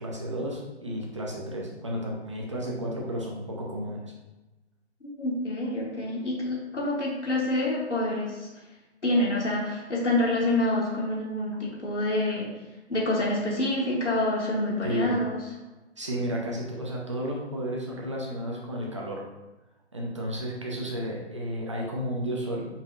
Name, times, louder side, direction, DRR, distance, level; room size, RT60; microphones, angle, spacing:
voice 1, 0.0-4.1 14.8-15.2 16.0-19.2 19.9-22.7, equal, 25° right, -2 dB, 0.5 m, -32 dB
voice 2, 5.2-8.5 9.0-12.5 12.9-15.4, left 1 dB, 90° left, -5 dB, 1.1 m, -27 dB
5.4 x 2.7 x 2.5 m, 1.1 s
figure-of-eight pair, 145°, 34 cm